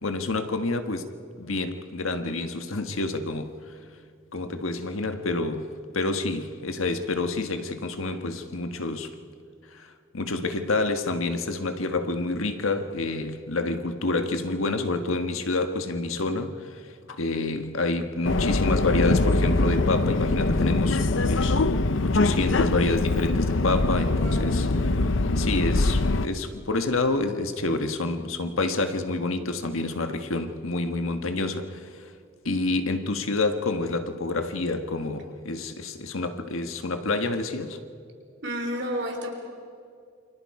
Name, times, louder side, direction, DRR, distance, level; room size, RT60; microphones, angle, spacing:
voice 1, 0.0-1.1 1.3-3.6 4.3-9.1 9.7-16.8 17.1-24.7 25.4-31.9 32.4-37.8, left 2 dB, 85° left, 1.5 m, -28 dB
Subway metro underground, 18.3-26.3, left 2 dB, 70° left, 0.8 m, -23 dB
voice 2, 24.1-24.6 38.4-39.3, equal, 60° right, 3.7 m, -31 dB
28.5 x 25.5 x 4.8 m
head